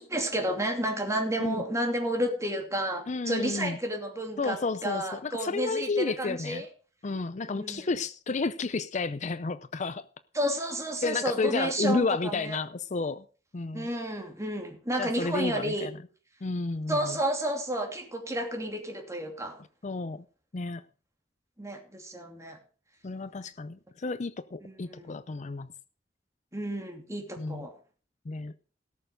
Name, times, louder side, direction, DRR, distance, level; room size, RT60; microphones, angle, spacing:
voice 1, 0.0-6.7 7.4-7.9 10.3-12.6 13.7-15.9 16.9-19.6 21.6-22.6 24.6-25.2 26.5-27.7, right 1 dB, 20° right, 2.7 m, -31 dB
voice 2, 3.1-3.8 4.4-6.6 7.0-10.1 11.0-13.2 13.5-13.9 15.0-15.9 16.4-17.2 19.8-20.2 20.5-20.8 23.0-25.7 27.4-27.7 28.3-28.5, left 3 dB, 40° left, 0.5 m, -31 dB
18.0 x 6.8 x 5.1 m
head